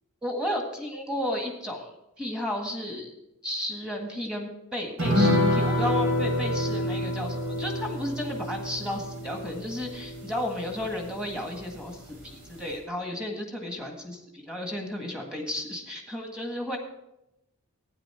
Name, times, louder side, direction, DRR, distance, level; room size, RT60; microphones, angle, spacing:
voice 1, 0.2-1.9 2.2-3.1 3.4-16.8, left 1 dB, 5° right, 1 dB, 1.7 m, -33 dB
sound 1, 5.0-11.8 12.1-12.2 12.5-12.7, left 1 dB, 85° right, 3.1 m, -27 dB
12.0 x 9.6 x 4.4 m, 0.86 s
head